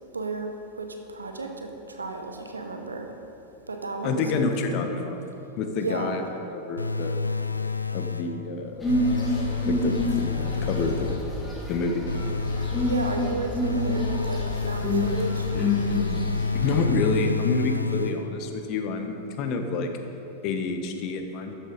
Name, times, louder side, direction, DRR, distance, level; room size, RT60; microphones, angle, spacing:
voice 1, 0.1-3.1 3.7-4.5 5.8-6.2 12.8-15.5 16.7-16.8, right 2 dB, 75° right, 4 dB, 1.0 m, -33 dB
voice 2, 4.0-5.2 5.6-6.2 6.5-7.2 7.9-8.8 9.7-10.2 10.6-11.1 11.7-12.1 16.5-19.9 20.4-21.6, left 4 dB, 40° left, 5 dB, 1.2 m, -28 dB
sound 1, 6.8-8.4 8.9-11.4 12.1-18.5, left 4 dB, 80° left, 0.5 m, -29 dB
sound 2, 8.8-16.8, left 1 dB, 10° left, 2.5 m, -28 dB
13.5 x 7.6 x 5.2 m, 2.9 s
figure-of-eight pair, 90°, 0 cm